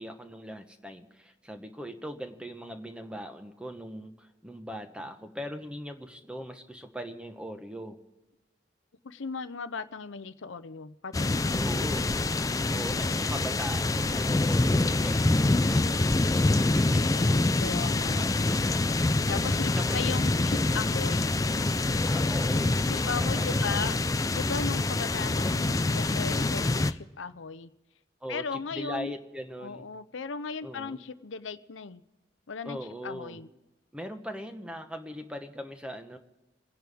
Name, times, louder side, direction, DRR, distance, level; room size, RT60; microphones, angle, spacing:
voice 1, 0.0-8.0 11.6-12.1 12.7-16.2 16.7-17.0 18.2-18.3 18.8-18.9 19.8-20.1 22.1-23.8 28.2-29.9 30.6-31.0 32.6-33.4 33.9-36.2, equal, 5° right, 6 dB, 1.0 m, -40 dB
voice 2, 9.0-11.9 12.7-13.2 16.9-18.3 19.3-21.3 22.5-24.0 24.3-27.7 28.3-29.1 29.6-32.0 32.5-32.8 33.0-33.5, left 5 dB, 90° left, 13 dB, 0.7 m, -37 dB
sound 1, 11.1-26.9, left 2 dB, 20° left, 0.4 m, -26 dB
28.5 x 10.5 x 3.5 m, 1.1 s
head